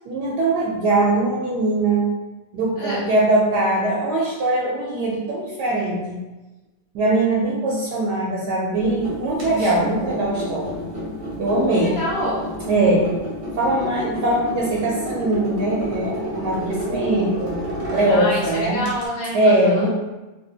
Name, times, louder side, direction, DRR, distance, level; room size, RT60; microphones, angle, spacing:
voice 1, 0.1-2.1 2.5-6.2 6.9-10.8 11.4-12.0 12.7-13.1 13.6-17.6 17.9-18.8 19.3-19.9, right 2 dB, 75° right, -4 dB, 1.1 m, -21 dB
voice 2, 2.8-3.1 11.8-12.5 18.1-19.9, equal, 55° left, -10 dB, 1.1 m, -27 dB
sound 1, 8.7-19.1, equal, 40° right, 0.7 m, -30 dB
3.3 x 2.6 x 2.7 m, 1.1 s
omnidirectional pair, 2.0 m